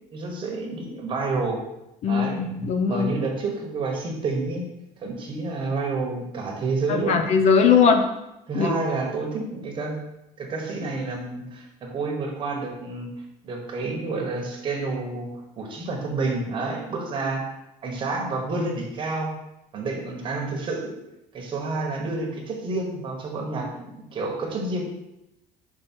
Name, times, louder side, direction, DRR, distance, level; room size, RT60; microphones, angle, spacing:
voice 1, 0.1-1.6 2.1-2.4 2.9-4.7 5.0-7.3 8.5-10.0 10.4-13.1 13.4-17.5 17.8-19.3 19.7-21.0 21.3-24.9, right 3 dB, 35° right, 0 dB, 1.3 m, -29 dB
voice 2, 2.0-3.1 6.9-8.0 8.5-8.8, left 6 dB, 50° left, 6 dB, 0.6 m, -20 dB
6.1 x 4.5 x 4.5 m, 0.89 s
cardioid pair, 175°, 15 cm